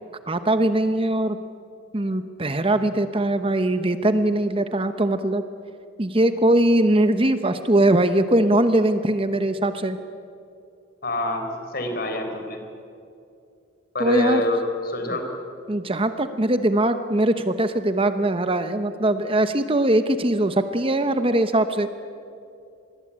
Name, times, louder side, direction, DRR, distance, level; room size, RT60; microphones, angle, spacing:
voice 1, 0.3-1.4 1.9-5.4 6.0-10.0 14.0-14.4 15.7-21.9, right 1 dB, 30° right, 10 dB, 1.0 m, -21 dB
voice 2, 11.0-12.6 13.9-15.3, left 1 dB, 50° left, 5 dB, 4.5 m, -26 dB
26.5 x 21.0 x 8.8 m, 2.5 s
head